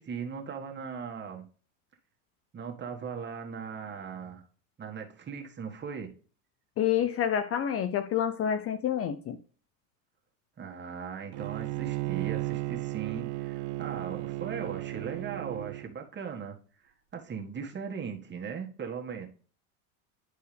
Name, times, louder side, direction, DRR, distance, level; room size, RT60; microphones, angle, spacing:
voice 1, 0.0-1.4 2.5-4.4 4.8-6.1 10.6-16.5 17.1-19.3, right 6 dB, 25° right, 1.7 m, -38 dB
voice 2, 6.8-9.4, left 9 dB, 35° left, 0.6 m, -28 dB
Bowed string instrument, 11.3-15.9, right 21 dB, 45° right, 0.5 m, -34 dB
11.0 x 4.6 x 3.4 m
supercardioid pair, 115°, 42 cm